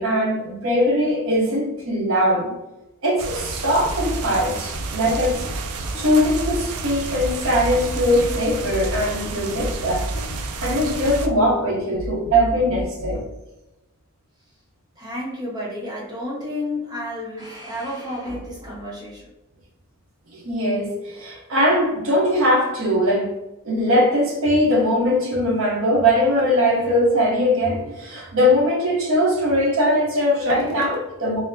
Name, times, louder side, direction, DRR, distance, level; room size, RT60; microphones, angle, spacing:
voice 1, 0.0-2.6 3.0-5.5 6.0-10.1 10.6-13.2 20.3-23.3 23.6-31.4, equal, 60° right, 0.8 m, -20 dB
sound 1, 3.2-11.3, right 4 dB, 85° right, 0.4 m, -31 dB
sound 2, 3.8-13.3, right 1 dB, 45° left, 0.5 m, -32 dB
voice 2, 15.0-19.3, left 1 dB, 20° right, 0.7 m, -31 dB
4.2 x 2.0 x 2.6 m
head